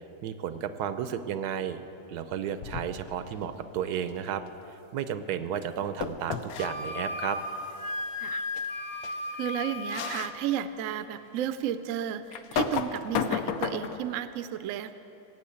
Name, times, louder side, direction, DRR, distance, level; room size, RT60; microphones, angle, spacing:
voice 1, 0.2-1.8 2.1-4.4 4.9-7.4, right 9 dB, 85° right, 11 dB, 1.2 m, -32 dB
sound 1, 2.6-3.1 6.0-6.7 8.6-8.7 9.0-9.2 9.9-10.3 10.9-11.0 12.3-14.1, left 7 dB, 75° left, 1.1 m, -32 dB
Wind instrument woodwind instrument, 6.6-10.3, left 2 dB, 40° left, 0.8 m, -35 dB
voice 2, 9.0-14.9, right 10 dB, 65° right, 12 dB, 0.9 m, -33 dB
17.0 x 7.4 x 8.5 m, 3.0 s
omnidirectional pair, 1.6 m